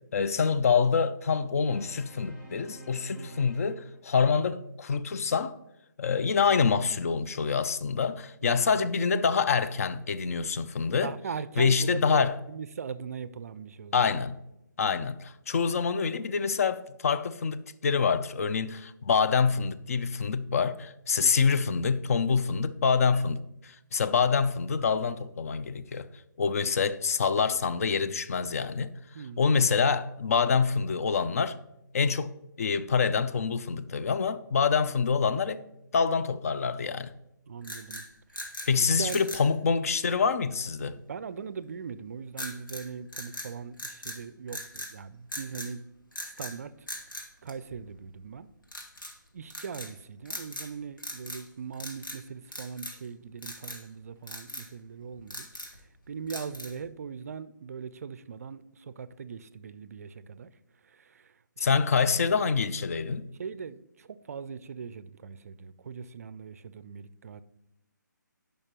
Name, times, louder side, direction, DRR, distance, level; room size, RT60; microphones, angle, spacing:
voice 1, 0.1-5.6 6.0-11.1 11.6-12.3 13.9-14.4 14.8-26.1 26.4-28.9 29.4-31.6 31.9-32.3 32.6-35.6 35.9-37.1 38.7-41.0 61.6-63.3, left 5 dB, 45° left, 0.4 m, -26 dB
sound 1, 1.6-4.3, right 1 dB, 20° left, 2.2 m, -50 dB
voice 2, 3.2-3.6 8.4-8.6 11.0-14.1 14.8-15.0 21.2-21.5 29.1-29.5 37.5-38.1 38.3-38.4 38.7-39.2 40.9-45.9 46.2-46.7 47.4-48.5 49.3-55.5 56.1-60.5 60.8-61.7 63.4-67.4, right 6 dB, 50° right, 0.4 m, -40 dB
sound 2, 37.6-38.7 39.0-39.5 42.4-42.9 43.1-44.2 44.5-44.9 45.3-45.7 46.1-46.6 46.9-48.1 48.7-49.1 49.5-49.9 50.3-50.7 51.0-51.5 51.7-52.2 52.5-53.1 53.4-53.8 54.3-54.7 55.1-55.8 56.3-56.8, left 1 dB, 90° left, 1.7 m, -40 dB
10.5 x 5.2 x 3.0 m
figure-of-eight pair, 145°, 11 cm